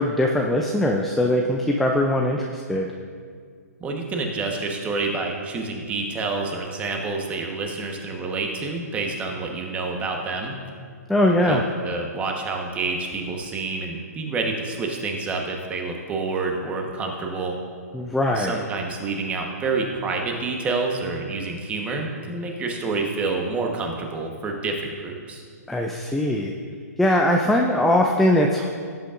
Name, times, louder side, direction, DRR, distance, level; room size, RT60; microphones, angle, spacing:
voice 1, 0.0-2.9 11.1-11.6 17.9-18.6 25.7-26.5 27.0-28.7, left 1 dB, ahead, 0 dB, 0.4 m, -21 dB
voice 2, 3.8-10.5 11.4-17.6 18.3-25.4, right 3 dB, 15° right, 1 dB, 1.2 m, -28 dB
18.0 x 8.3 x 2.5 m, 2.1 s
hypercardioid pair, 145°, 9 cm